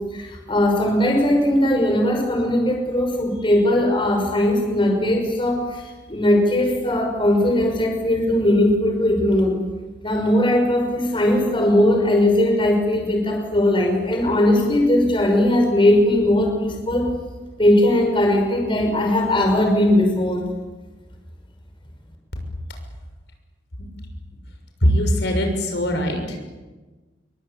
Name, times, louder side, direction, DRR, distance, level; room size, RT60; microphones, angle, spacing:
voice 1, 0.1-9.6 10.0-17.1 17.6-20.5, left 1 dB, 30° left, 3 dB, 5.7 m, -19 dB
voice 2, 24.8-26.4, equal, 70° left, 4 dB, 6.6 m, -21 dB
29.0 x 23.5 x 8.7 m, 1.2 s
head